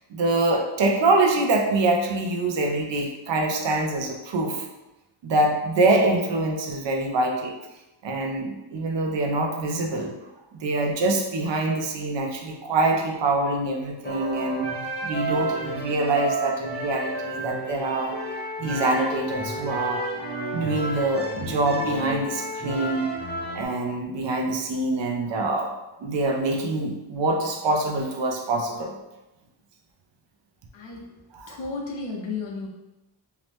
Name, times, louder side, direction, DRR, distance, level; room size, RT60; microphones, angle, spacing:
voice 1, 0.1-4.7 5.2-7.6 8.0-10.1 10.5-14.7 15.0-18.1 18.6-20.0 20.5-23.1 23.5-25.7 26.0-28.9 31.3-31.6, right 2 dB, 60° right, 2 dB, 0.6 m, -25 dB
sound 1, 14.0-23.6, right 1 dB, 25° left, 0.3 m, -31 dB
voice 2, 30.7-31.2 31.5-32.7, left 4 dB, 70° left, -1 dB, 0.7 m, -33 dB
2.8 x 2.0 x 3.2 m, 1.0 s
wide cardioid pair, 120°, 49 cm